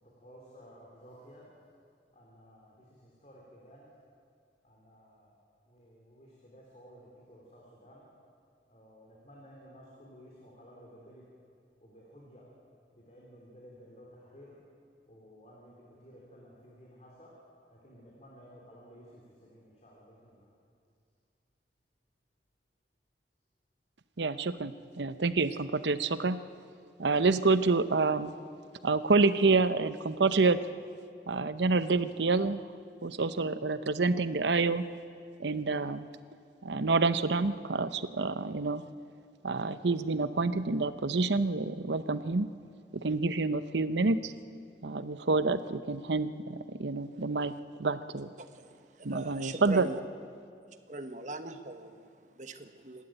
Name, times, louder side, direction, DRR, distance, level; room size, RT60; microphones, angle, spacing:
voice 1, 0.2-1.4 2.1-2.7 3.2-3.8 4.6-5.4 5.7-8.0 8.7-11.2 11.8-12.5 13.1-14.5 15.1-17.3 17.8-20.4, equal, 35° left, -3 dB, 3.4 m, -54 dB
voice 2, 24.2-26.4 27.0-28.3 28.8-30.6 31.3-32.7 33.0-34.9 35.4-36.1 36.6-38.8 39.4-42.5 42.9-44.3 44.8-47.5 47.8-48.3 49.0-49.9, right 3 dB, 80° right, 13 dB, 0.8 m, -28 dB
voice 3, 48.4-50.0 50.9-53.0, right 2 dB, 45° right, 8 dB, 1.2 m, -41 dB
27.0 x 12.5 x 9.0 m, 2.3 s
head